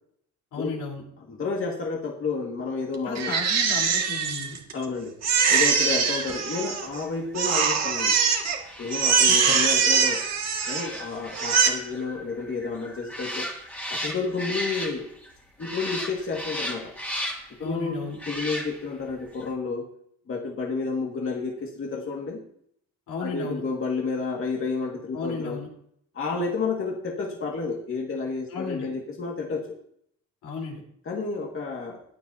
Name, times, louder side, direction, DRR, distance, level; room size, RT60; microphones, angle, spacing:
voice 1, 0.5-1.0 3.0-4.6 9.3-9.5 17.6-18.2 23.1-23.6 25.1-25.7 28.5-28.9 30.4-30.8, left 4 dB, 75° left, -1 dB, 4.1 m, -34 dB
voice 2, 1.3-3.4 4.7-5.1 5.5-8.2 8.8-10.2 10.7-13.5 13.9-15.1 15.6-16.9 17.6-19.9 20.3-22.4 23.2-25.6 26.1-29.8 31.1-32.0, left 4 dB, 45° left, -1 dB, 2.1 m, -30 dB
Crying sobbing, 3.2-4.8 5.2-7.0 7.4-8.6 8.9-11.0 11.3-11.7, right 6 dB, 60° right, 2.1 m, -22 dB
sound 1, 5.6-15.3 15.6-17.6 18.1-19.0 19.3-19.5, equal, 5° left, 2.5 m, -37 dB
15.5 x 9.5 x 2.8 m, 0.67 s
cardioid pair, 90°, 30 cm